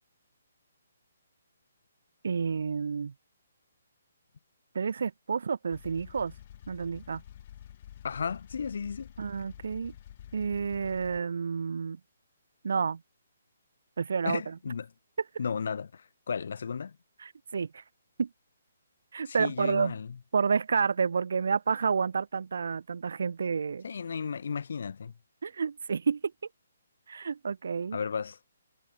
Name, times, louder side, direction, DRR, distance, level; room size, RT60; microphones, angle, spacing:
voice 1, 2.2-3.1 4.7-6.3 6.7-7.2 9.2-9.9 10.3-12.0 12.6-13.0 14.0-14.5 17.2-17.8 18.2-18.3 19.1-19.9 20.3-23.8 25.4-26.2 27.1-28.0, right 5 dB, 70° right, 1.4 m, -30 dB
sound 1, 5.7-11.2, left 11 dB, 40° left, 1.3 m, -49 dB
voice 2, 8.0-9.1 14.2-14.9 15.4-17.0 19.3-20.2 23.8-25.1 27.9-28.4, left 6 dB, 65° left, 1.6 m, -34 dB
hypercardioid pair, 155°, 0 cm